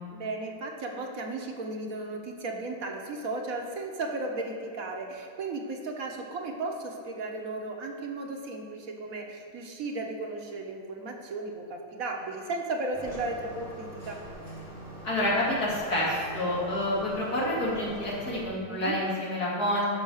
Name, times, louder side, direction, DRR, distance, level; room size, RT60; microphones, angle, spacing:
voice 1, 0.1-14.2 18.7-19.0, right 2 dB, 65° right, 1 dB, 1.5 m, -35 dB
sound 1, 12.9-18.4, right 1 dB, 70° left, 3.7 m, -43 dB
voice 2, 15.0-20.0, left 1 dB, 85° left, -6 dB, 3.0 m, -28 dB
12.0 x 5.1 x 6.4 m, 2.2 s
omnidirectional pair, 1.6 m